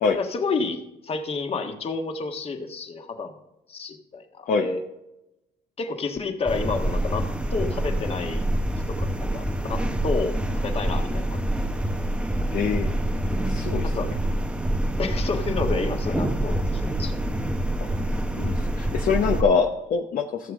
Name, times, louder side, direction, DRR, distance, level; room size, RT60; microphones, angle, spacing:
voice 1, 0.1-3.3 3.7-4.8 5.8-8.5 8.9-10.4 10.6-11.8 13.8-14.1 15.0-17.2, left 4 dB, 35° left, 5 dB, 1.5 m, -30 dB
sound 1, 6.5-19.4, right 1 dB, 5° right, 0.8 m, -26 dB
voice 2, 12.5-13.0 13.4-13.9 17.8-17.9 18.4-20.5, left 5 dB, 55° left, 3 dB, 0.9 m, -24 dB
15.0 x 7.0 x 3.7 m, 0.93 s
cardioid pair, 110°, 17 cm